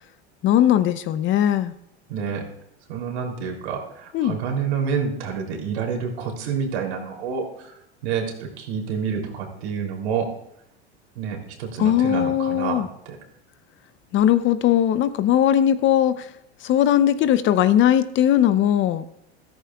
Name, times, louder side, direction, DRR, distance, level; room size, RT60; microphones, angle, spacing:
voice 1, 0.4-1.7 4.1-4.4 11.8-12.9 14.1-16.3 16.6-19.1, left 11 dB, 35° left, 13 dB, 0.7 m, -19 dB
voice 2, 2.1-2.4 2.9-7.7 8.0-10.3 11.1-13.2, right 6 dB, 80° right, 1 dB, 3.1 m, -28 dB
14.0 x 13.5 x 2.3 m, 0.78 s
hypercardioid pair, 110°, 32 cm